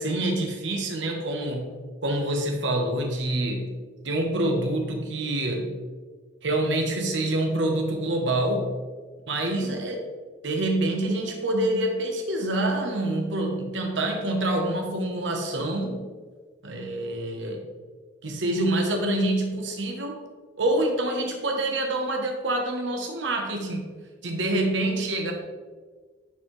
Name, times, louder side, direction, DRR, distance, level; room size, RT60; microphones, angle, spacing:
voice 1, 0.0-1.7 2.0-3.7 4.0-5.8 6.4-8.7 9.3-10.0 10.4-16.1 16.6-17.7 18.2-20.2 20.6-23.9 24.2-25.3, right 1 dB, 80° right, 2 dB, 1.0 m, -26 dB
10.0 x 4.4 x 3.1 m, 1.5 s
head